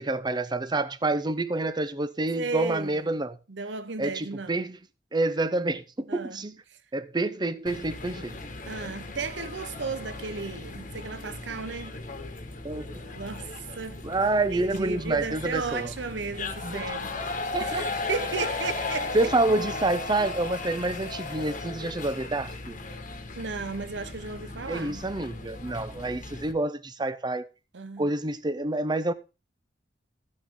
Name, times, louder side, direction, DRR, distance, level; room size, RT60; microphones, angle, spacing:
voice 1, 0.0-3.4 4.0-4.8 5.1-6.6 6.9-8.4 12.6-13.1 14.0-15.9 16.6-16.8 17.5-17.9 19.1-22.8 24.7-27.5 28.0-29.1, right 2 dB, 25° right, 0.7 m, -28 dB
voice 2, 2.3-3.2 3.5-4.6 6.1-6.4 6.7-6.8 8.7-12.0 13.2-14.0 14.5-19.3 23.3-25.0 27.7-28.1, right 4 dB, 85° right, 0.8 m, -35 dB
sound 1, 7.7-26.5, left 3 dB, 50° left, 1.5 m, -36 dB
14.5 x 6.5 x 3.7 m
head